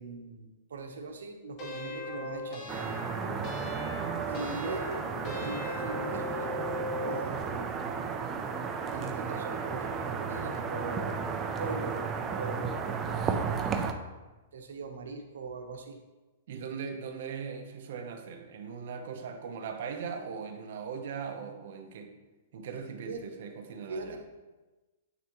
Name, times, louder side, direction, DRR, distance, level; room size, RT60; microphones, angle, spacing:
voice 1, 0.0-2.7 4.3-6.6 7.0-8.0 8.9-11.2 11.6-13.3 14.5-16.0 23.1-23.2 23.9-24.2, right 3 dB, 90° right, 4 dB, 0.9 m, -40 dB
sound 1, 1.6-7.3, left 2 dB, 30° left, 0.8 m, -39 dB
sound 2, 2.7-13.9, right 5 dB, 15° right, 0.4 m, -34 dB
voice 2, 16.5-22.1 22.5-24.2, right 6 dB, 55° right, 5 dB, 0.7 m, -39 dB
9.2 x 3.4 x 3.0 m, 1.2 s
hypercardioid pair, 165°, 0 cm